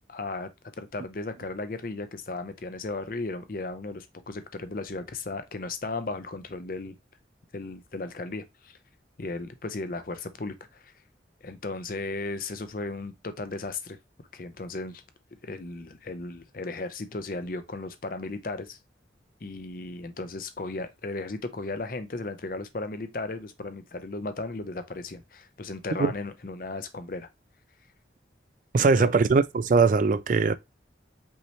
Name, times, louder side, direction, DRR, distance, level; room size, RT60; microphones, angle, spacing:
voice 1, 0.1-0.5 0.8-7.0 7.5-8.8 9.2-10.9 11.4-14.0 14.3-15.0 15.4-18.8 19.4-27.3 28.7-29.1, left 3 dB, 50° left, 0.6 m, -35 dB
voice 2, 28.7-30.5, right 4 dB, 45° right, 0.3 m, -21 dB
5.4 x 3.0 x 3.1 m
head